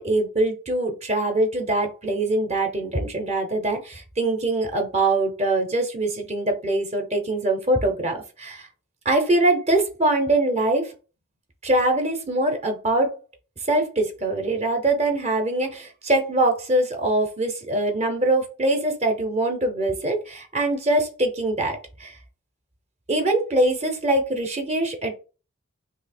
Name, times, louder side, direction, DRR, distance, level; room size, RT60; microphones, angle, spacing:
voice 1, 0.0-8.7 9.0-10.9 11.6-13.1 13.6-22.2 23.1-25.2, right 2 dB, 30° right, 4 dB, 0.6 m, -23 dB
2.8 x 2.7 x 4.2 m, 0.34 s
head